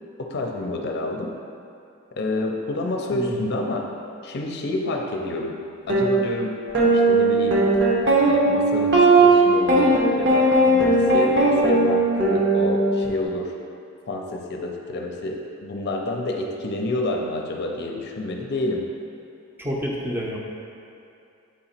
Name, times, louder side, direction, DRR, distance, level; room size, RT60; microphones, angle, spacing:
voice 1, 0.2-1.3 2.1-3.9 4.2-5.6 5.9-6.6 6.9-7.6 8.2-13.5 14.1-18.8, left 2 dB, 50° left, 1 dB, 0.6 m, -28 dB
voice 2, 3.1-3.4 19.6-20.4, equal, 10° right, -3 dB, 0.7 m, -28 dB
guitar melody, 5.9-6.1 6.7-13.1, right 2 dB, 55° right, 0.9 m, -18 dB
7.5 x 2.9 x 4.3 m, 2.6 s
head